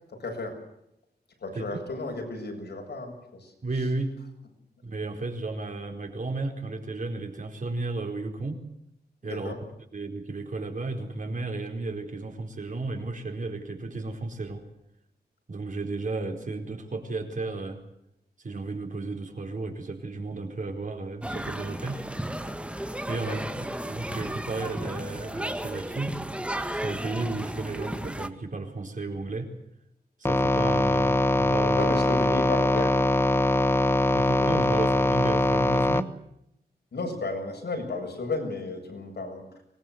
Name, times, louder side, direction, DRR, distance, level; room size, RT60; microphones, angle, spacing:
voice 1, 0.1-0.6 1.4-3.9 9.2-9.6 23.3-23.4 31.7-33.0 34.4-34.9 36.9-39.6, left 2 dB, 80° left, 3 dB, 7.5 m, -34 dB
voice 2, 3.6-4.2 4.8-8.6 9.2-9.6 9.9-14.6 15.5-17.8 18.4-22.0 23.1-26.1 26.7-29.5 30.2-31.9 34.1-36.1, right 3 dB, 50° right, 3 dB, 4.5 m, -33 dB
sound 1, 21.2-28.3, right 1 dB, 5° right, 1.4 m, -34 dB
sound 2, 30.2-36.0, left 1 dB, 15° left, 1.0 m, -22 dB
24.5 x 20.5 x 8.0 m, 0.80 s
wide cardioid pair, 130°, 17 cm